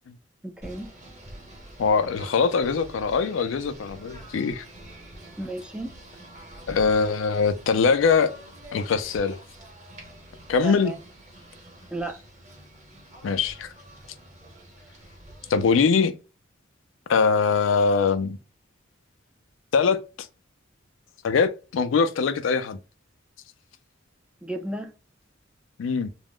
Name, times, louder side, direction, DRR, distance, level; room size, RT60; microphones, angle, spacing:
voice 1, 0.4-0.9 5.4-6.0 10.6-11.0 11.9-12.2 15.5-15.6 24.4-24.9, right 2 dB, 5° right, 0.3 m, -33 dB
Singing / Bird, 0.6-15.9, right 1 dB, 40° right, 1.1 m, -46 dB
voice 2, 1.8-4.6 6.7-8.3 8.7-9.4 10.5-10.9 13.2-13.7 15.5-16.1 17.1-18.4 19.7-20.0 21.2-22.8 25.8-26.1, left 5 dB, 75° left, 0.4 m, -22 dB
2.4 x 2.0 x 3.4 m
head